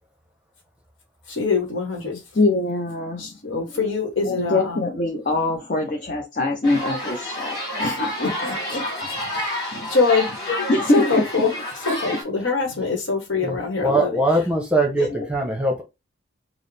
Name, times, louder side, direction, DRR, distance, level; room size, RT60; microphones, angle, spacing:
voice 1, 1.3-2.2 3.2-4.9 7.8-8.8 9.3-10.7 10.9-11.5 11.8-14.4, left 4 dB, 70° left, 1.3 m, -24 dB
voice 2, 2.3-3.9 4.2-8.5 8.8-8.9 9.7-9.9 10.5-11.4 15.0-15.5, left 2 dB, 40° left, 0.7 m, -24 dB
sound 1, 6.6-12.2, left 1 dB, 25° left, 1.9 m, -29 dB
voice 3, 13.4-15.8, right 2 dB, 5° right, 0.8 m, -22 dB
4.5 x 2.1 x 3.3 m
head